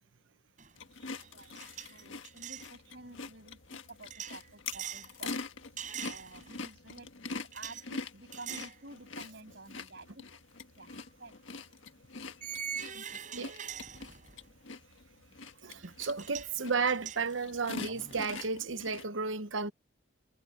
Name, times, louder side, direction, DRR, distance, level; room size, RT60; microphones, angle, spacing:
sound 1, 0.6-0.8 1.1-2.7 4.1-5.1 5.8-6.6 7.5-7.8 8.3-8.8 9.2-9.4 10.9-11.0 12.4-14.5 15.8-15.9 16.2-16.5 16.9-18.3, right 8 dB, 40° right, 5.7 m, -43 dB
sound 2, 0.8-19.0, left 4 dB, 80° left, 1.6 m, -45 dB
voice 1, 1.9-5.4 6.0-7.1 7.3-10.2 10.7-10.9 11.2-11.3 12.9-13.2, right 2 dB, 55° right, 7.5 m, -51 dB
voice 2, 15.6-19.7, right 4 dB, 75° right, 1.1 m, -33 dB
head